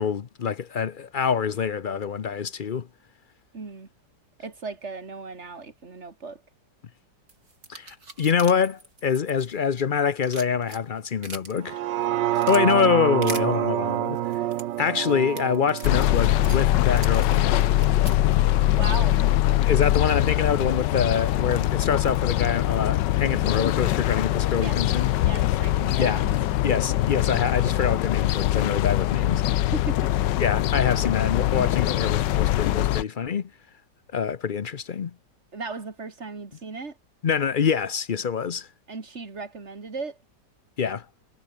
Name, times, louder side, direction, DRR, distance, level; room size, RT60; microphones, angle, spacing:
voice 1, 0.0-2.9 7.7-11.8 12.5-14.4 14.8-17.7 18.1-18.2 19.5-25.1 26.0-26.3 26.6-29.4 30.4-33.5 34.1-35.1 37.2-38.7 40.8-41.0, left 6 dB, 55° left, 0.5 m, -25 dB
voice 2, 3.5-3.9 4.4-6.4 18.8-19.2 24.6-24.8 25.2-26.4 29.7-30.1 35.5-37.0 38.9-40.2, right 4 dB, 40° right, 2.9 m, -36 dB
sound 1, 7.3-9.8 10.1-11.6 12.0-12.6 13.2-13.4 14.1-18.3, right 2 dB, 55° right, 5.9 m, -41 dB
sound 2, 11.6-17.8 18.2-18.3, right 13 dB, 85° right, 1.4 m, -28 dB
sound 3, 15.8-33.0, left 14 dB, 80° left, 1.4 m, -22 dB
omnidirectional pair, 1.9 m